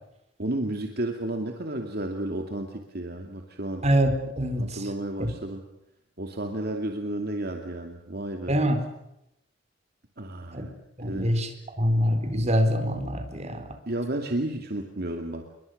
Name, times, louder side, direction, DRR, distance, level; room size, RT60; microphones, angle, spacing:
voice 1, 0.4-3.9 4.6-5.6 6.2-8.6 10.2-10.7 11.0-11.3 13.9-15.4, right 1 dB, 55° right, 4 dB, 2.4 m, -32 dB
voice 2, 3.8-4.8 5.2-5.3 8.5-8.8 10.5-10.7 11.0-11.5 11.8-13.6, equal, 35° right, 7 dB, 4.3 m, -24 dB
28.0 x 23.0 x 6.6 m, 0.83 s
head